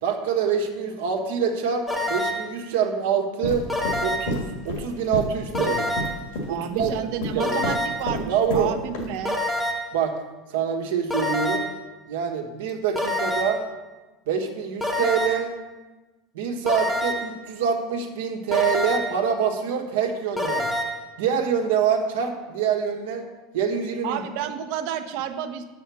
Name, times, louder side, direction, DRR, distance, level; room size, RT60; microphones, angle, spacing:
voice 1, 0.0-3.6 4.0-5.9 6.5-7.6 8.3-8.8 9.9-10.1 10.5-11.6 12.1-13.6 14.3-15.5 16.3-20.7 21.2-23.3 23.5-24.2, right 7 dB, 90° right, 3 dB, 1.4 m, -25 dB
sound 1, 1.9-2.6 3.7-4.4 5.5-6.3 7.4-8.1 9.2-10.0 11.1-11.8 12.9-13.7 14.8-15.5 16.7-17.4 18.5-19.2 20.4-21.1, left 1 dB, ahead, 0.7 m, -27 dB
sound 2, 3.4-8.7 8.9-9.1, left 1 dB, 80° left, 1.9 m, -30 dB
voice 2, 6.5-9.4 24.0-25.6, right 9 dB, 60° right, 8 dB, 0.8 m, -31 dB
6.3 x 5.7 x 7.0 m, 1.2 s
supercardioid pair, 150°, 0 cm